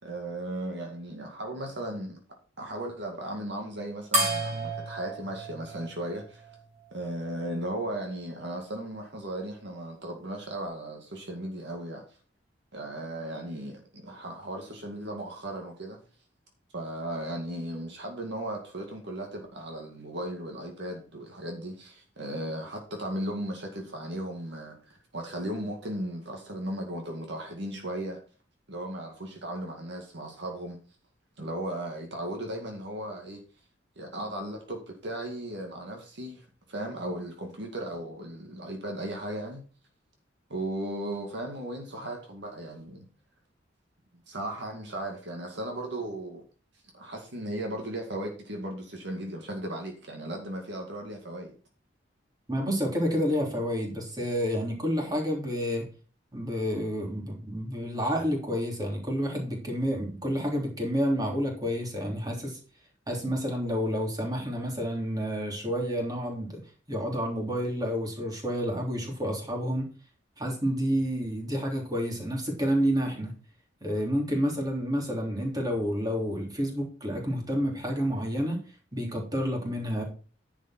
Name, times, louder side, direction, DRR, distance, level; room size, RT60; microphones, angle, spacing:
voice 1, 0.0-2.2 2.6-6.5 6.9-12.0 12.7-16.0 16.7-28.2 28.7-30.8 31.4-33.4 34.0-39.6 40.5-43.1 44.1-46.4 46.9-51.5, right 1 dB, 65° right, 2 dB, 2.2 m, -36 dB
sound 1, 4.1-6.9, right 2 dB, 40° right, 4.7 m, -31 dB
voice 2, 52.5-55.9 56.3-62.6 63.1-66.5 66.9-69.9 70.4-73.3 73.8-78.6 78.9-80.0, equal, 20° right, 0 dB, 3.3 m, -29 dB
10.5 x 7.2 x 4.4 m, 0.38 s
head